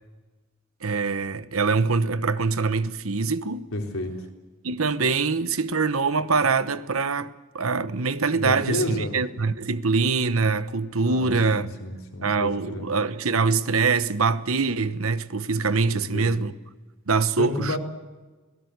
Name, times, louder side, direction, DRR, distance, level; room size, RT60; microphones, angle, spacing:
voice 1, 0.8-3.6 4.6-11.7 12.2-16.5 17.1-17.8, right 4 dB, 80° right, 1.1 m, -24 dB
voice 2, 3.7-4.2 8.3-9.1 11.0-12.9 16.1-16.3 17.4-17.8, left 1 dB, 80° left, 3.8 m, -30 dB
26.0 x 17.5 x 8.1 m
head